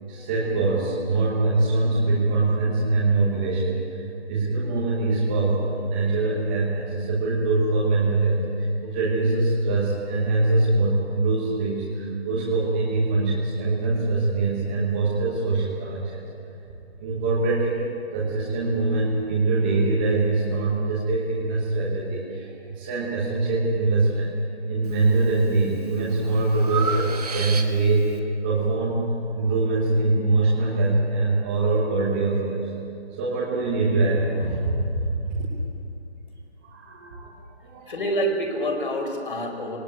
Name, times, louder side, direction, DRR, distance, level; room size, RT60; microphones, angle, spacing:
voice 1, 0.0-16.2 17.0-17.9 18.1-24.3 24.7-28.1 28.4-32.7 33.1-35.4 36.6-37.9, right 3 dB, 10° right, -7 dB, 1.1 m, -23 dB
Breathing, 24.8-25.3 25.8-28.1, right 6 dB, 35° right, 1.3 m, -32 dB
voice 2, 37.9-39.8, equal, 50° left, 3 dB, 4.4 m, -27 dB
18.5 x 18.5 x 9.0 m, 2.8 s
figure-of-eight pair, 165°, 34 cm